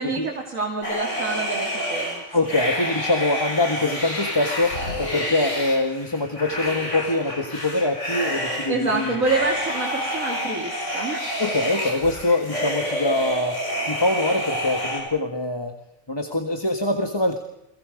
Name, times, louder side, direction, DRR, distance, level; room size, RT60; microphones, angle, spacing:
voice 1, 0.0-2.2 8.7-11.2, right 3 dB, 70° right, -1 dB, 3.1 m, -27 dB
sound 1, 0.8-15.0, equal, 60° left, 5.6 m, -29 dB
voice 2, 2.3-9.2 11.4-15.7 16.1-17.4, left 2 dB, 20° left, 5 dB, 1.5 m, -24 dB
30.0 x 23.0 x 5.1 m, 0.83 s
omnidirectional pair, 1.4 m